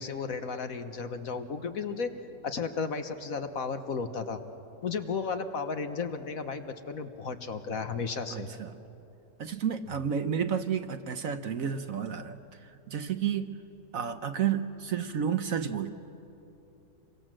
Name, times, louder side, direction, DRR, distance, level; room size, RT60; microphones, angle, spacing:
voice 1, 0.0-2.1 2.4-4.4 4.8-8.5, left 5 dB, 55° left, 8 dB, 1.4 m, -34 dB
voice 2, 8.3-8.7 9.4-13.6 13.9-15.9, right 8 dB, 60° right, 9 dB, 1.1 m, -31 dB
27.5 x 23.0 x 7.6 m, 2.9 s
omnidirectional pair, 1.9 m